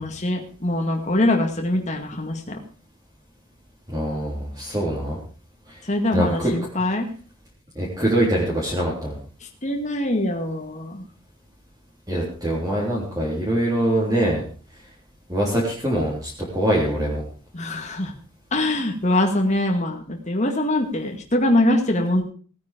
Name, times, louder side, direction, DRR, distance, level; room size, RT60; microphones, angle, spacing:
voice 1, 0.0-2.6 5.9-7.1 9.6-11.0 17.5-18.1 18.5-22.2, left 1 dB, 35° left, 3 dB, 2.0 m, -23 dB
voice 2, 3.9-5.2 6.1-6.6 7.8-9.2 12.1-14.4 15.3-17.2, right 1 dB, 15° right, -5 dB, 3.6 m, -23 dB
17.5 x 9.5 x 5.2 m, 0.41 s
head